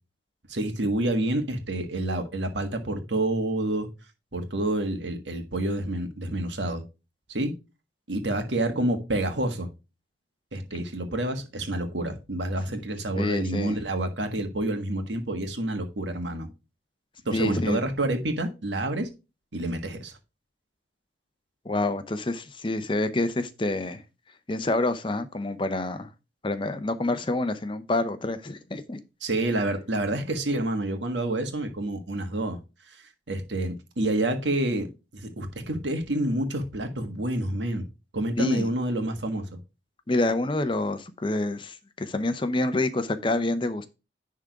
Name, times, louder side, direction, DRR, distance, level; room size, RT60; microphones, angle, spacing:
voice 1, 0.5-3.9 4.3-6.8 7.3-7.5 8.1-9.7 10.5-16.5 17.2-19.1 19.5-20.1 29.2-32.6 32.9-33.0 33.3-34.9 35.1-37.8 38.1-39.6, right 1 dB, 85° right, 1.6 m, -28 dB
voice 2, 13.2-13.8 17.3-17.8 21.7-24.0 24.5-26.1 26.4-29.0 38.4-38.7 40.1-43.9, left 2 dB, 30° left, 0.7 m, -27 dB
10.5 x 3.8 x 4.7 m
head